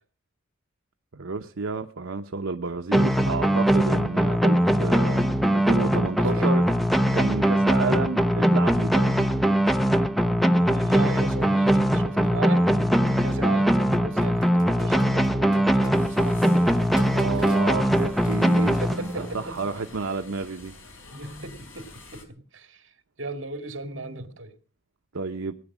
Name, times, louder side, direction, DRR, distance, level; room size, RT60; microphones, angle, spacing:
voice 1, 1.1-5.3 5.5-6.6 7.0-9.3 17.1-20.7 25.1-25.5, right 4 dB, 85° right, 6 dB, 0.8 m, -31 dB
Goofy Music, 2.9-19.4, equal, ahead, 0.8 m, -21 dB
voice 2, 6.2-6.7 7.5-7.7 10.5-12.7 13.0-17.7 18.6-19.6 21.1-24.5, right 2 dB, 70° right, 7 dB, 2.3 m, -37 dB
Computer keyboard, 11.4-11.5 13.1-13.3 14.2-16.0 16.6-19.3, equal, 20° left, 4.3 m, -48 dB
sound 1, 15.9-22.2, left 2 dB, 75° left, 4.5 m, -47 dB
18.0 x 9.8 x 6.2 m, 0.40 s
head